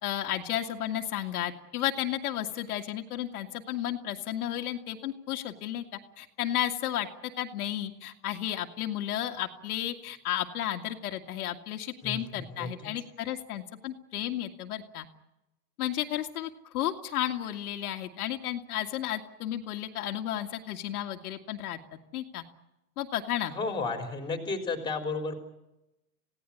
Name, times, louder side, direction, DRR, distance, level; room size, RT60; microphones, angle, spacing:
voice 1, 0.0-5.8 6.2-15.1 15.8-22.4 23.0-23.5, left 12 dB, 65° left, 3 dB, 2.1 m, -33 dB
voice 2, 12.5-12.9 23.5-25.4, left 3 dB, 10° left, 5 dB, 3.5 m, -33 dB
27.5 x 17.0 x 9.8 m, 0.94 s
supercardioid pair, 150°, 47 cm